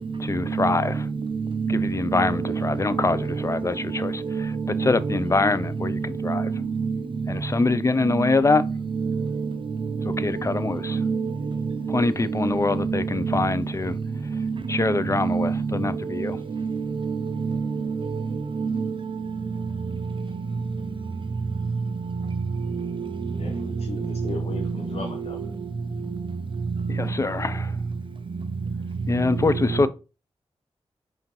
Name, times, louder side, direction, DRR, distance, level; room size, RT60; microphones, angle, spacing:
voice 1, 0.2-1.0 1.7-4.5 4.8-6.5 7.3-8.6 10.0-11.0 11.9-14.0 14.7-16.4 26.9-27.7 29.1-29.9, left 3 dB, 25° left, 0.3 m, -24 dB
voice 2, 1.6-2.6 4.3-5.2 6.4-6.9 8.2-8.3 9.0-9.5 10.1-10.3 10.9-11.3 11.9-12.0 12.4-12.5 12.8-13.5 14.4-14.5 15.2-15.6 16.2-16.4 17.0-17.2 17.4-17.6 18.1-18.2 18.6-18.9 22.8-22.9, right 5 dB, 50° right, 0.4 m, -26 dB
voice 3, 23.4-25.4, left 4 dB, 60° left, 0.7 m, -37 dB
5.1 x 2.6 x 2.9 m
cardioid pair, 45°, 11 cm